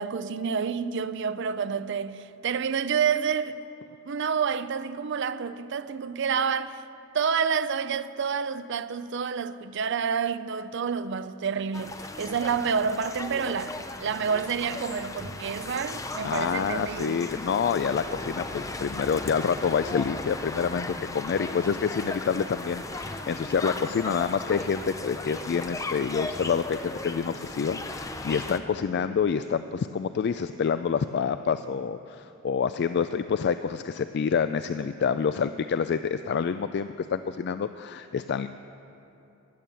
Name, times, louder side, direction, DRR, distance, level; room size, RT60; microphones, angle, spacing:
voice 1, 0.0-3.6 4.1-6.9 7.1-17.2, right 6 dB, 60° right, 0.5 m, -29 dB
sound 1, 11.7-28.6, left 2 dB, 15° left, 0.6 m, -36 dB
voice 2, 16.2-38.5, left 6 dB, 55° left, 0.3 m, -27 dB
16.0 x 11.0 x 7.0 m
head